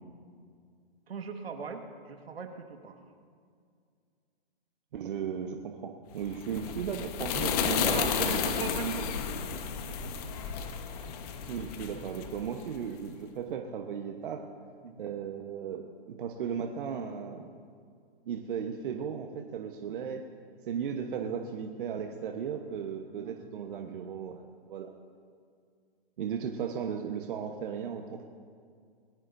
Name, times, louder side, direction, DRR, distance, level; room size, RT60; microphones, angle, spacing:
voice 1, 1.1-3.0 7.4-10.0 10.2-10.4 14.8-15.0 20.7-20.8 23.2-23.6, right 5 dB, 75° right, 5 dB, 1.7 m, -39 dB
voice 2, 4.9-8.3 11.5-14.4 15.0-17.5 18.3-20.2 20.7-24.9 26.2-28.2, right 7 dB, 55° right, 4 dB, 1.2 m, -36 dB
sound 1, 6.2-12.9, left 7 dB, 40° left, 1.3 m, -32 dB
21.0 x 17.5 x 2.7 m, 2.2 s
hypercardioid pair, 135°, 31 cm